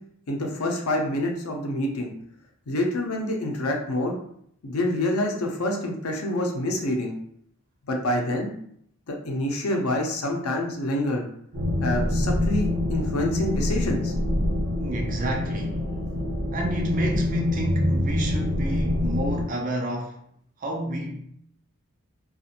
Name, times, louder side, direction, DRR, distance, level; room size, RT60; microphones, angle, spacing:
voice 1, 0.3-2.1 2.7-4.2 4.6-7.1 7.9-8.5 9.1-11.2 11.8-14.1, left 1 dB, 85° left, 0.6 m, -27 dB
sound 1, 11.5-19.4, left 1 dB, 75° right, 0.8 m, -25 dB
voice 2, 14.8-15.9 16.5-20.2 20.6-21.2, right 1 dB, 40° right, 0.4 m, -30 dB
2.5 x 2.4 x 2.8 m
head